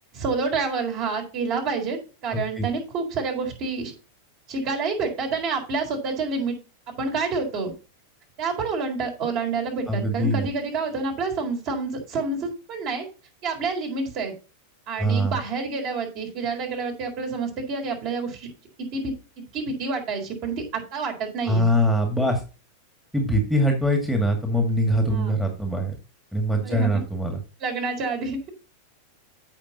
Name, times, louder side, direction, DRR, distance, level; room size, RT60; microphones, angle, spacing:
voice 1, 0.1-3.9 4.5-6.6 6.9-7.7 8.4-13.1 13.4-14.3 14.9-18.5 18.8-19.1 19.5-21.7 25.1-25.4 26.6-27.0 27.6-28.5, right 4 dB, 40° right, 2 dB, 4.1 m, -28 dB
voice 2, 2.3-2.7 9.9-10.5 15.0-15.3 21.5-22.4 23.1-25.9 26.3-27.4, equal, ahead, 2 dB, 2.1 m, -23 dB
15.0 x 5.8 x 2.8 m, 0.32 s
figure-of-eight pair, 90°, 0 cm